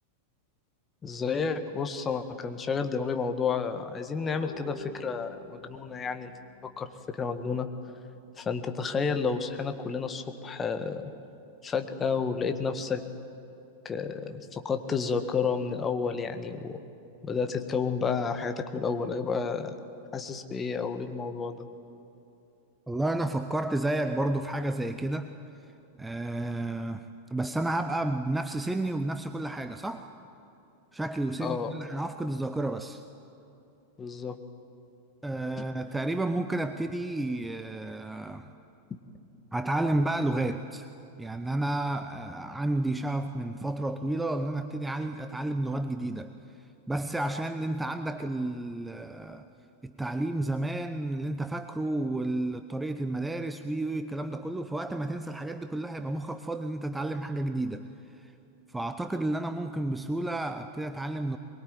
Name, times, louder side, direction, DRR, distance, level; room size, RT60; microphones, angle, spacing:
voice 1, 1.0-6.3 6.6-7.7 8.4-11.1 11.6-13.0 13.8-16.8 17.2-19.7 20.1-21.7 31.4-31.7 34.0-34.4 35.6-35.7, left 5 dB, 20° left, 8 dB, 1.6 m, -31 dB
sound 1, 4.4-7.9, left 3 dB, 75° left, 4.1 m, -48 dB
voice 2, 22.9-25.3 26.0-30.1 30.9-33.0 35.2-38.5 39.5-40.9 41.2-46.3 46.9-49.5 49.8-57.9 58.2-58.3 58.7-61.4, right 2 dB, 5° right, 9 dB, 0.9 m, -31 dB
23.0 x 22.0 x 9.3 m, 2.8 s
figure-of-eight pair, 90°, 0 cm